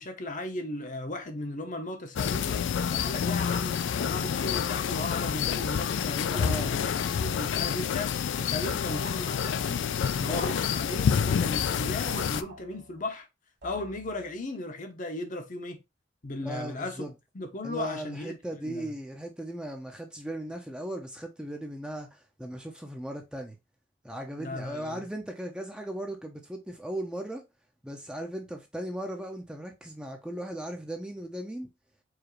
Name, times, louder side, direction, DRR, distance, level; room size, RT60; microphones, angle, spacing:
voice 1, 0.0-6.9 7.2-9.8 10.1-13.3 13.6-15.8 16.2-17.1 17.3-18.4 18.6-18.9 24.4-25.0, left 2 dB, 40° left, 0.7 m, -36 dB
sound 1, 2.2-12.4, left 7 dB, 65° left, 0.3 m, -28 dB
voice 2, 6.4-6.7 16.4-17.1 17.6-23.6 24.0-27.4 27.8-31.7, right 1 dB, 5° right, 0.5 m, -37 dB
sound 2, 8.9-9.8 10.3-11.2 12.1-13.1 13.6-14.3, right 2 dB, 55° right, 1.6 m, -45 dB
4.8 x 2.5 x 3.0 m
head